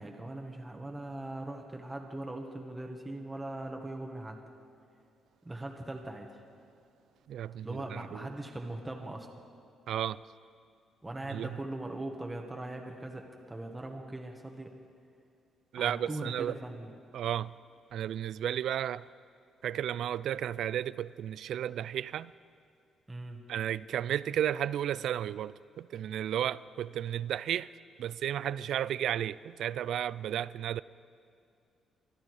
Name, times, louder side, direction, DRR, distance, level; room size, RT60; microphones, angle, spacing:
voice 1, 0.0-4.4 5.4-6.3 7.6-9.3 11.0-14.7 15.8-16.9 23.1-23.4, right 2 dB, 15° right, 1.5 m, -40 dB
voice 2, 7.3-8.3 9.9-10.2 11.3-11.5 15.7-16.6 17.1-17.6 17.9-19.1 19.6-22.3 23.5-27.7 28.0-30.8, right 10 dB, 75° right, 0.3 m, -33 dB
25.0 x 10.0 x 4.8 m
cardioid pair, 90°, 0 cm